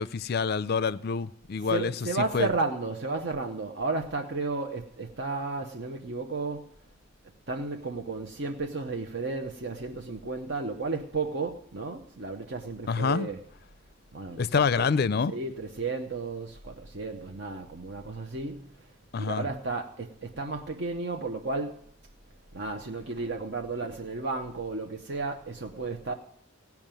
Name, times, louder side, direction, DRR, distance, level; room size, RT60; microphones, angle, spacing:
voice 1, 0.0-1.9 2.3-2.5 12.9-13.3 14.4-15.3 19.1-19.4, left 5 dB, 50° left, 0.4 m, -26 dB
voice 2, 1.6-6.7 7.5-13.4 14.1-14.9 15.3-18.7 19.2-21.8 22.5-26.1, right 3 dB, 60° right, 0.9 m, -33 dB
17.0 x 5.9 x 9.0 m
head